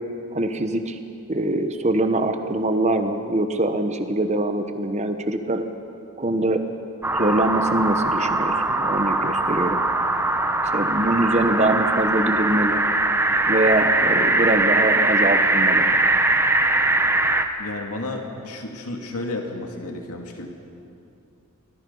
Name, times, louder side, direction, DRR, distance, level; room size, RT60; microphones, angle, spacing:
voice 1, 0.3-1.0 1.3-5.6 6.2-6.6 7.1-9.8 10.7-12.8 13.5-15.9, right 1 dB, 30° right, 7 dB, 1.1 m, -23 dB
sound 1, 7.0-17.5, right 2 dB, 10° right, 0.8 m, -21 dB
voice 2, 17.6-20.5, left 2 dB, 85° left, 2 dB, 2.4 m, -32 dB
24.5 x 19.5 x 5.6 m, 2.6 s
head